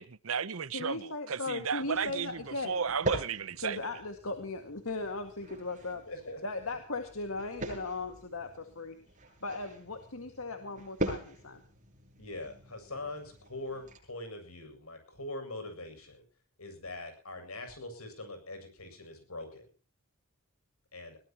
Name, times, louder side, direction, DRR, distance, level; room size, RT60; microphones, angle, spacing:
voice 1, 0.0-3.8, right 6 dB, 70° right, 0.8 m, -34 dB
voice 2, 0.7-2.8 3.6-6.0 6.4-9.0 9.4-11.6, left 3 dB, 75° left, 2.1 m, -37 dB
sound 1, 1.6-14.0, right 2 dB, 35° right, 7.4 m, -42 dB
voice 3, 6.1-6.8 12.2-16.2 16.6-19.7 20.9-21.2, left 2 dB, 90° left, 7.5 m, -43 dB
22.0 x 18.5 x 3.0 m
head